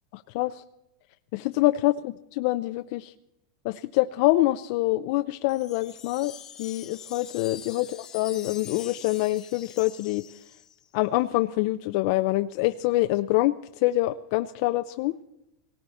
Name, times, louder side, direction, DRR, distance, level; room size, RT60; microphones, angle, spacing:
voice 1, 0.1-0.6 1.3-3.1 3.6-10.2 10.9-15.2, left 17 dB, 50° left, 9 dB, 0.4 m, -25 dB
Wind chime, 5.5-10.9, left 9 dB, 25° left, 0.8 m, -44 dB
18.0 x 17.5 x 4.2 m, 0.91 s
supercardioid pair, 155°, 2 cm